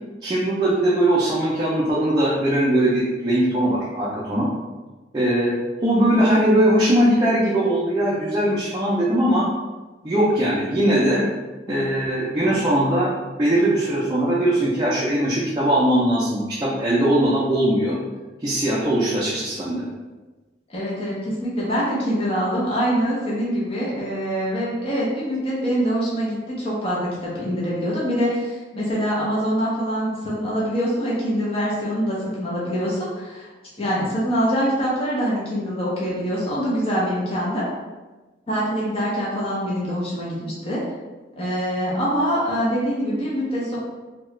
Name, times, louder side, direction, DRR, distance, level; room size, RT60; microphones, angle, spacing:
voice 1, 0.2-4.5 5.1-5.5 5.8-9.5 10.0-11.2 11.7-13.1 13.4-18.0 18.4-19.8, right 1 dB, 20° right, -8 dB, 0.4 m, -20 dB
voice 2, 20.7-33.5 33.8-37.6 38.5-40.8 41.3-43.8, equal, 30° left, -7 dB, 0.7 m, -24 dB
2.8 x 2.3 x 3.1 m, 1.2 s
head